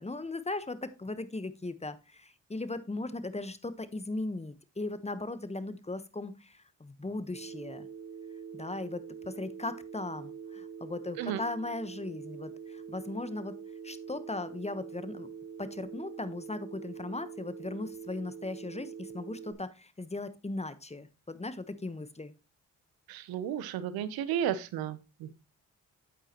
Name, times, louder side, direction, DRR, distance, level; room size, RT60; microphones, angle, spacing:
voice 1, 0.0-7.9 8.5-13.5 13.8-15.3 15.6-22.3, left 2 dB, 20° left, 13 dB, 1.1 m, -38 dB
Telephone, 7.3-19.5, right 7 dB, 30° right, 2.7 m, -44 dB
voice 2, 23.1-25.3, right 10 dB, 80° right, 14 dB, 0.8 m, -33 dB
8.6 x 8.4 x 3.0 m, 0.29 s
supercardioid pair, 45°, 35 cm